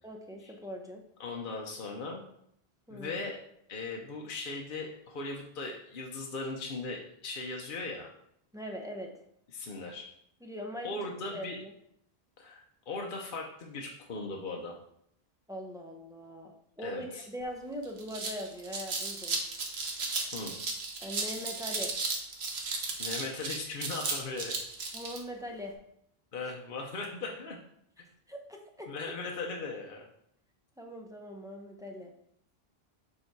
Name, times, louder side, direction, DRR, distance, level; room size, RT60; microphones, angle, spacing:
voice 1, 0.0-1.0 2.9-3.2 8.5-9.1 10.4-11.1 11.3-11.7 15.5-19.4 21.0-21.9 24.9-25.7 28.3-28.9 30.8-32.1, equal, 5° right, 1 dB, 0.8 m, -41 dB
voice 2, 1.2-2.2 2.9-3.4 3.7-8.1 9.5-10.0 10.8-11.6 12.4-14.8 16.8-17.3 20.3-20.5 23.0-24.6 26.3-27.6 28.9-30.1, left 3 dB, 55° left, 0 dB, 0.9 m, -38 dB
sound 1, 17.4-17.5 17.8-25.2, right 3 dB, 80° right, 1.3 m, -35 dB
6.9 x 3.8 x 4.5 m, 0.72 s
omnidirectional pair, 1.1 m